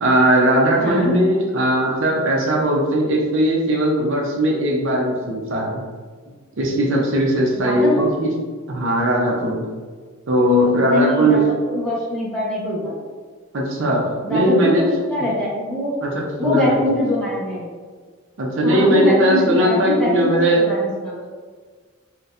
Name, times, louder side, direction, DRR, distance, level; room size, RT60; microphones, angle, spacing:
voice 1, 0.0-5.8 6.6-8.3 8.7-9.6 10.3-11.4 13.5-14.0 14.3-14.8 16.0-16.8 18.4-20.7, right 1 dB, 65° right, -2 dB, 0.5 m, -18 dB
voice 2, 0.8-1.1 7.6-8.1 10.4-12.9 14.2-14.7 15.1-15.9 16.4-17.7 18.6-21.2, left 2 dB, 5° left, -9 dB, 1.0 m, -23 dB
4.1 x 2.2 x 2.4 m, 1.5 s
head